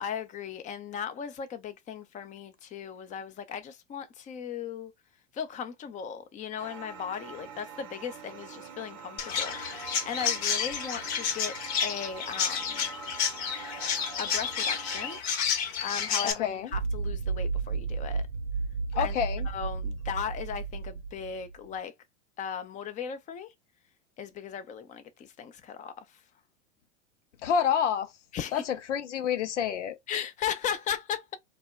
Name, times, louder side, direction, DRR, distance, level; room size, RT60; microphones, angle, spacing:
voice 1, 0.0-4.9 5.3-12.9 13.9-15.2 15.5-18.2 19.0-19.1 19.5-21.9 22.4-23.5 24.2-26.1 28.3-28.6 30.1-31.4, left 7 dB, 20° left, 0.5 m, -37 dB
sound 1, 6.6-15.2, right 6 dB, 45° right, 0.7 m, -44 dB
Chirp tweet, 9.2-16.3, left 7 dB, 65° left, 0.9 m, -30 dB
voice 2, 16.4-16.7 18.9-19.5 27.4-28.1 28.5-30.0, left 8 dB, 85° left, 0.5 m, -28 dB
sound 2, 16.7-21.5, right 4 dB, 85° right, 0.6 m, -32 dB
2.1 x 2.0 x 3.5 m
hypercardioid pair, 90°, 35 cm